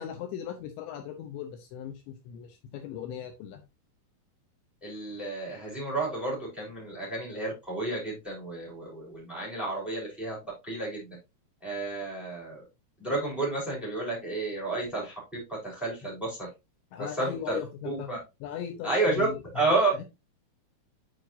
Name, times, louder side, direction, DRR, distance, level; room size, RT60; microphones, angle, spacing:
voice 1, 0.0-3.6 16.9-18.1 18.4-20.0, left 9 dB, 85° left, 5 dB, 2.7 m, -38 dB
voice 2, 4.8-10.4 10.6-11.2 11.6-12.6 13.0-15.2 15.5-16.5 17.2-17.6 17.8-18.2 18.8-19.3 19.5-19.9, right 2 dB, ahead, -3 dB, 2.9 m, -31 dB
9.1 x 4.7 x 2.6 m, 0.24 s
omnidirectional pair, 5.9 m